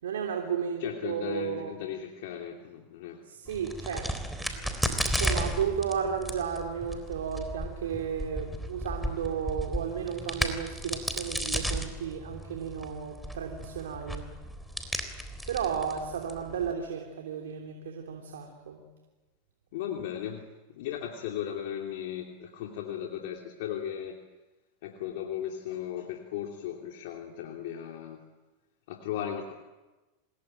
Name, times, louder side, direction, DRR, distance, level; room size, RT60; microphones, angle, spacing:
voice 1, 0.0-1.8 3.2-4.2 4.5-14.3 15.5-18.8, right 7 dB, 85° right, 2 dB, 3.3 m, -33 dB
voice 2, 0.8-3.2 3.9-4.0 19.7-20.5 20.7-24.2 24.8-28.2 28.9-29.5, left 10 dB, 70° left, 1 dB, 2.9 m, -36 dB
Crack, 3.5-16.7, equal, ahead, 3.7 m, -34 dB
27.0 x 20.5 x 9.1 m, 1.2 s
hypercardioid pair, 115°, 0 cm